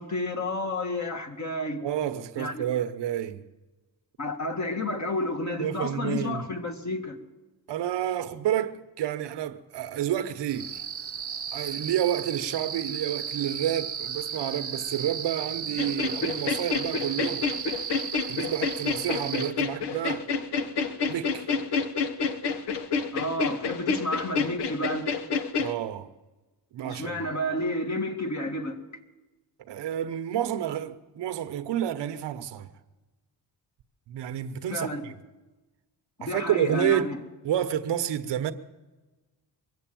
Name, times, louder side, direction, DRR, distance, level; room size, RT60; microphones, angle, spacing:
voice 1, 0.0-1.8 2.4-2.7 4.2-7.2 23.1-25.2 26.8-28.8 34.7-35.0 36.2-37.2, left 1 dB, 40° left, 1.9 m, -31 dB
voice 2, 1.8-3.4 5.6-6.5 7.7-10.8 11.5-17.5 18.3-20.3 21.1-21.5 25.6-26.1 26.7-27.2 29.6-32.7 34.1-35.2 36.2-37.1 37.4-38.5, right 10 dB, 80° right, 1.0 m, -29 dB
sound 1, 10.5-19.5, right 7 dB, 35° right, 0.8 m, -35 dB
sound 2, 15.8-25.7, left 5 dB, 70° left, 1.1 m, -29 dB
23.0 x 7.9 x 7.6 m
cardioid pair, 100°, 41 cm